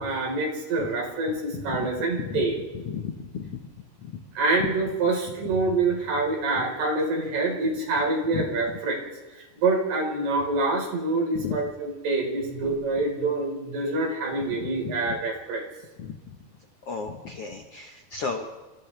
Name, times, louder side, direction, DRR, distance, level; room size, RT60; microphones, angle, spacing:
voice 1, 0.0-2.6 4.4-9.0 9.6-15.6, right 3 dB, 80° right, -1 dB, 6.4 m, -26 dB
voice 2, 1.5-1.9 2.2-2.4 2.8-3.6 4.6-4.7 8.3-8.5 11.3-11.6 14.8-14.9 16.0-16.2 16.9-18.5, left 6 dB, 75° left, 2 dB, 1.3 m, -33 dB
29.0 x 27.5 x 3.4 m, 1.2 s
omnidirectional pair, 4.6 m